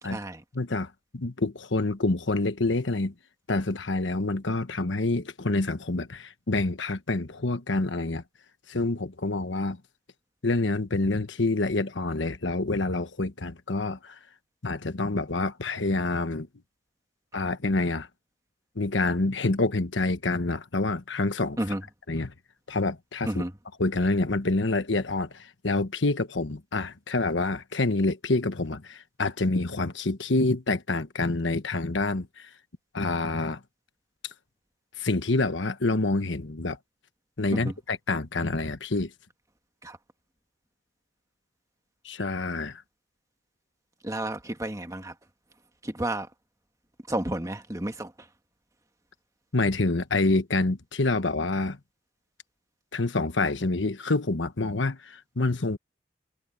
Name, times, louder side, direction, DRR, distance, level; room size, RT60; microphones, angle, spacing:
voice 1, 0.0-0.4 21.6-21.8 23.2-23.5 37.5-37.7 39.8-40.0 44.0-45.1 45.8-46.3 47.1-48.3, right 1 dB, 15° right, 1.5 m, -31 dB
voice 2, 0.5-3.1 3.5-8.2 8.7-9.8 10.4-14.2 14.6-16.5 17.3-18.1 18.7-21.6 22.1-22.3 22.7-23.4 23.8-32.5 32.9-33.6 35.0-36.8 37.4-39.1 42.0-42.8 49.5-51.8 52.9-55.8, left 2 dB, 80° left, 1.2 m, -27 dB
head